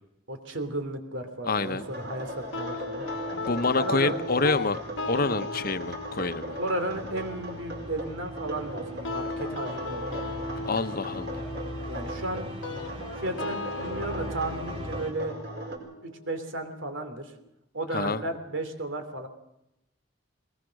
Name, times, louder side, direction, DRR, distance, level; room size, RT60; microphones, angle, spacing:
voice 1, 0.3-3.1 3.8-4.2 6.6-10.4 11.9-12.8 13.2-15.3 16.0-17.3 17.7-19.3, right 1 dB, 90° right, 7 dB, 3.0 m, -34 dB
voice 2, 1.5-1.8 3.5-6.6 10.7-11.4 17.9-18.2, left 3 dB, 50° left, 11 dB, 0.9 m, -27 dB
sound 1, 1.6-15.8, right 1 dB, 60° right, 4.9 m, -39 dB
sound 2, 2.3-15.1, left 1 dB, 30° right, 2.4 m, -43 dB
sound 3, 2.5-17.5, left 3 dB, 85° left, 1.2 m, -38 dB
21.0 x 20.0 x 6.4 m, 0.86 s
head